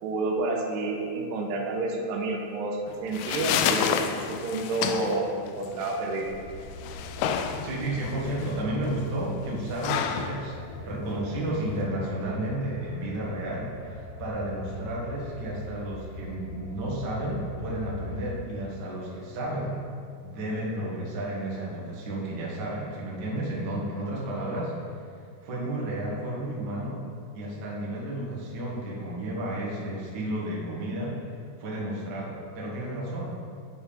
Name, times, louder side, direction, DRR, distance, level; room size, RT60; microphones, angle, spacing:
voice 1, 0.0-6.3, right 2 dB, 80° right, 1 dB, 3.0 m, -29 dB
sound 1, 2.9-11.9, left 8 dB, 80° left, 2.3 m, -31 dB
sound 2, 6.2-18.3, left 1 dB, 65° left, 1.7 m, -42 dB
voice 2, 7.6-19.8 20.2-24.7 25.4-27.0 27.3-31.2 31.6-33.4, right 1 dB, 50° right, -5 dB, 1.3 m, -32 dB
7.9 x 6.9 x 5.7 m, 2.4 s
omnidirectional pair, 4.9 m